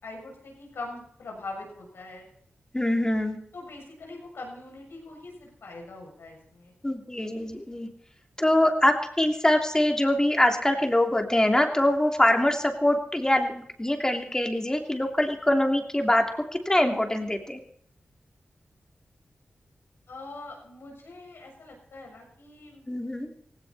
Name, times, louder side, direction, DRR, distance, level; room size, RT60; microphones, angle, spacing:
voice 1, 0.0-2.3 3.5-6.7 20.1-22.9, left 2 dB, 85° left, 0 dB, 7.0 m, -42 dB
voice 2, 2.7-3.4 6.8-7.9 8.4-17.6 22.9-23.3, left 1 dB, 15° left, 4 dB, 3.0 m, -24 dB
18.0 x 17.0 x 4.2 m, 0.68 s
cardioid pair, 55°, 4 cm